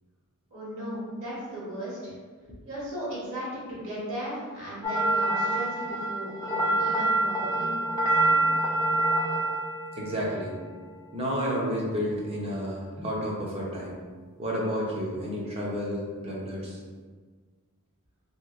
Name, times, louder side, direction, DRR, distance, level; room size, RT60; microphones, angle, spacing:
voice 1, 0.5-2.1 2.7-7.8 8.2-8.4, equal, 65° right, -8 dB, 1.5 m, -36 dB
sound 1, 4.8-11.1, right 2 dB, 15° left, 0.4 m, -26 dB
voice 2, 9.9-10.6 11.1-14.0 14.4-16.8, equal, 30° right, -4 dB, 0.6 m, -31 dB
2.9 x 2.9 x 2.4 m, 1.5 s
head